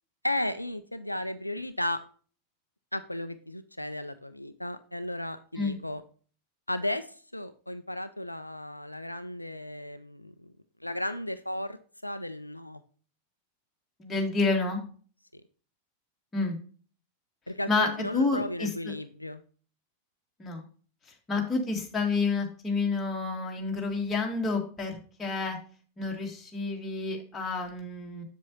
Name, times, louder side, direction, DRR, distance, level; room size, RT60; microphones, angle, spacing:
voice 1, 0.2-2.0 2.9-6.0 6.7-7.1 7.3-10.5 10.8-11.8 12.0-12.8 15.3-15.4 17.5-19.4, left 1 dB, 85° left, 11 dB, 0.4 m, -34 dB
voice 2, 14.0-14.8 16.3-16.6 17.7-18.9 20.4-20.6 21.3-25.6 26.0-28.2, left 3 dB, 15° left, 1 dB, 2.0 m, -29 dB
7.5 x 7.1 x 2.8 m, 0.40 s
figure-of-eight pair, 90°, 0 cm